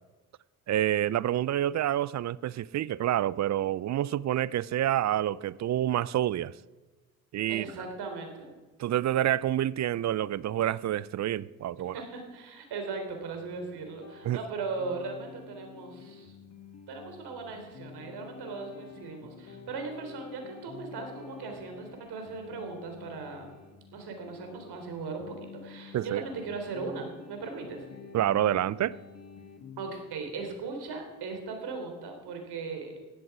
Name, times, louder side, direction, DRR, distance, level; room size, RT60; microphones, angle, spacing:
voice 1, 0.7-6.5 7.3-7.6 8.8-12.0 14.2-14.4 25.9-26.2 28.1-29.0, right 12 dB, 40° right, 0.5 m, -28 dB
voice 2, 7.5-8.5 11.9-16.3 16.9-23.5 23.9-27.8 29.8-32.9, right 4 dB, 65° right, 3.8 m, -38 dB
sound 1, 13.3-29.9, left 6 dB, 40° left, 1.9 m, -49 dB
15.5 x 11.5 x 4.9 m
hypercardioid pair, 55°, 42 cm